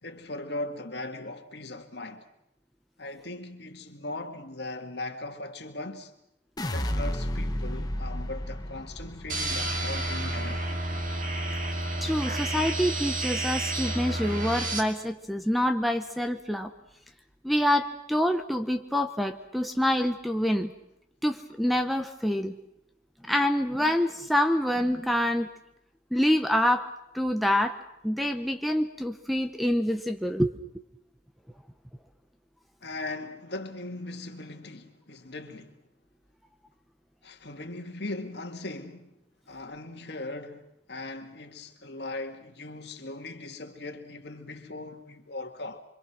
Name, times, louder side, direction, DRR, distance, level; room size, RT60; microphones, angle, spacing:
voice 1, 0.0-2.3 3.0-6.1 6.6-10.7 32.8-35.8 37.2-39.2 39.5-45.8, left 2 dB, 55° left, 2.2 m, -39 dB
sound 1, 6.6-12.7 13.1-13.7, equal, 20° left, 1.2 m, -34 dB
Radio Synthetic Noise, 9.3-14.8, right 1 dB, 40° right, 2.6 m, -30 dB
voice 2, 12.0-16.7 17.4-20.7 21.2-22.6 23.3-25.5 26.1-26.9 27.1-27.8 28.0-30.5, equal, ahead, 0.8 m, -26 dB
26.0 x 25.5 x 6.2 m
head